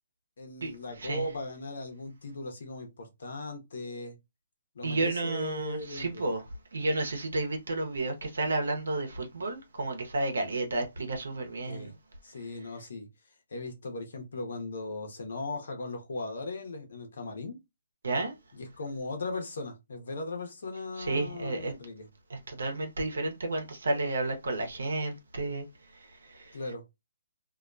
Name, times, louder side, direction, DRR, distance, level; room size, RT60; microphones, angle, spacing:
voice 1, 0.4-4.2 4.7-6.4 11.7-11.9 12.2-13.1 13.5-17.6 18.5-22.1 26.5-26.8, left 2 dB, 70° left, 0.9 m, -38 dB
voice 2, 4.8-6.4 6.7-11.9 18.0-18.3 21.0-21.7 22.3-25.7 26.3-26.5, right 2 dB, 75° right, 0.8 m, -31 dB
2.5 x 2.2 x 2.5 m
hypercardioid pair, 140°, 0 cm